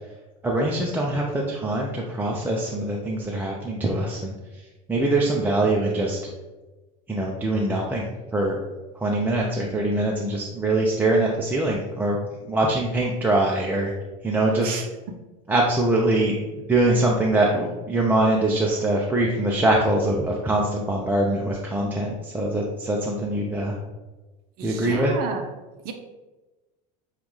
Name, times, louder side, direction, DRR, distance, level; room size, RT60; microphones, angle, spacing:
voice 1, 0.4-4.6 4.9-6.2 7.1-8.1 8.3-8.6 8.9-12.2 12.5-13.9 14.2-14.8 15.5-23.8 24.6-25.1, right 2 dB, 10° right, -3 dB, 0.5 m, -23 dB
voice 2, 24.6-25.4 25.8-25.9, right 6 dB, 50° right, 5 dB, 0.6 m, -32 dB
7.0 x 2.4 x 3.1 m, 1.2 s
supercardioid pair, 110°, 19 cm